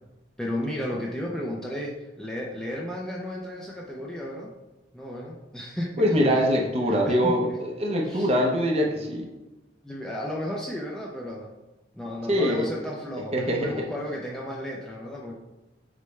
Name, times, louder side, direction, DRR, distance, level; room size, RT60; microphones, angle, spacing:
voice 1, 0.4-4.5 4.9-6.1 6.9-7.6 8.0-8.3 9.8-11.5 11.9-15.3, left 1 dB, 5° left, -3 dB, 0.4 m, -33 dB
voice 2, 6.0-9.3 12.3-12.7 13.3-13.8, equal, 35° right, -1 dB, 0.7 m, -23 dB
6.4 x 2.2 x 3.2 m, 1.0 s
head